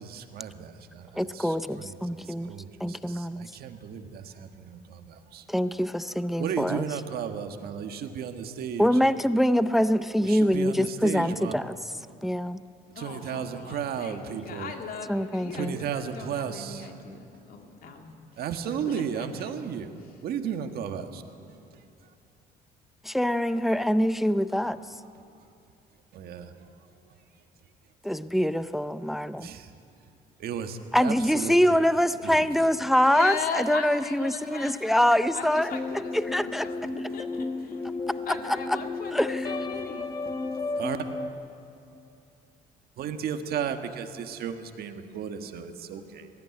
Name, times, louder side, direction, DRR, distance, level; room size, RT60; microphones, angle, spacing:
voice 1, 0.0-2.0 2.2-5.4 6.4-8.9 10.2-11.5 13.0-14.7 15.5-16.9 18.4-19.9 20.2-21.2 26.1-26.5 29.4-29.7 30.4-31.5 32.2-32.7 40.8-41.0 43.0-46.3, right 8 dB, 65° right, 1.6 m, -34 dB
voice 2, 1.1-2.5 2.8-3.5 5.5-6.9 8.8-11.9 12.2-12.6 15.1-15.8 23.0-24.8 28.0-29.5 30.9-36.7 38.5-38.6 39.1-39.5, equal, ahead, 0.5 m, -24 dB
voice 3, 12.9-18.6 18.9-19.5 19.9-20.1 33.0-37.8 38.3-40.1, left 5 dB, 60° left, 2.4 m, -38 dB
sound 1, 35.5-41.3, left 3 dB, 20° left, 1.5 m, -33 dB
19.5 x 15.0 x 9.7 m
cardioid pair, 110°, 17 cm